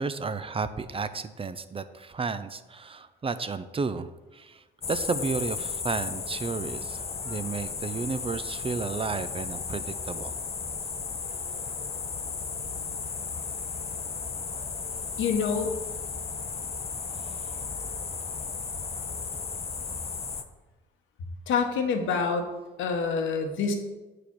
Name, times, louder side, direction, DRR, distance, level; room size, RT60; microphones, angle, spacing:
voice 1, 0.0-10.3 17.2-17.4, right 4 dB, 30° right, 12 dB, 0.5 m, -32 dB
sound 1, 4.8-20.4, left 5 dB, 30° left, 0.7 m, -35 dB
voice 2, 15.2-15.7 21.5-22.5 22.8-23.7, left 5 dB, 80° left, 4 dB, 1.2 m, -26 dB
6.9 x 4.9 x 6.0 m, 1.1 s
cardioid pair, 90°, 20 cm